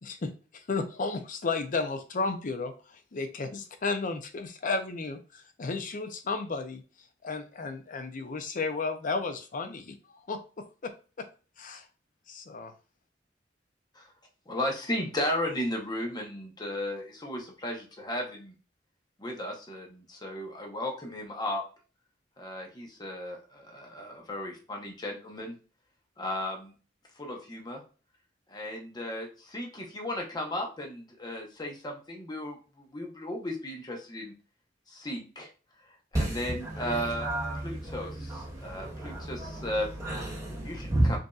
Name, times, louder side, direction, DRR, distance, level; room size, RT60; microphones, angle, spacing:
voice 1, 0.0-6.8 7.2-9.9 10.3-11.3 11.6-11.8 12.3-12.7, left 4 dB, 45° left, 0.6 m, -33 dB
voice 2, 14.5-18.5 19.2-21.6 22.4-25.6 26.2-26.7 27.2-27.8 28.5-34.3 34.9-35.5 36.3-37.3 37.6-40.0 40.6-41.2, left 1 dB, 25° left, 0.9 m, -35 dB
voice 3, 36.1-41.2, right 1 dB, 20° right, 2.1 m, -32 dB
5.2 x 2.7 x 2.4 m
head